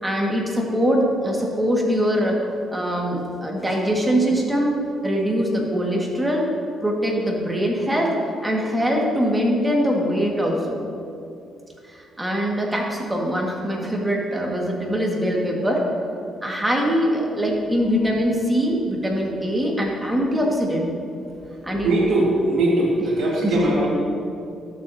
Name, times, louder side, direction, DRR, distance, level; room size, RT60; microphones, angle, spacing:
voice 1, 0.0-2.4 2.7-4.8 5.0-6.4 6.8-8.1 8.4-10.8 11.9-15.8 16.4-20.9 21.6-21.9 23.4-23.8, equal, 10° right, -2 dB, 1.8 m, -22 dB
voice 2, 21.8-23.9, right 1 dB, 75° right, -3 dB, 2.0 m, -20 dB
13.0 x 7.2 x 2.8 m, 2.5 s
cardioid pair, 90°, 0 cm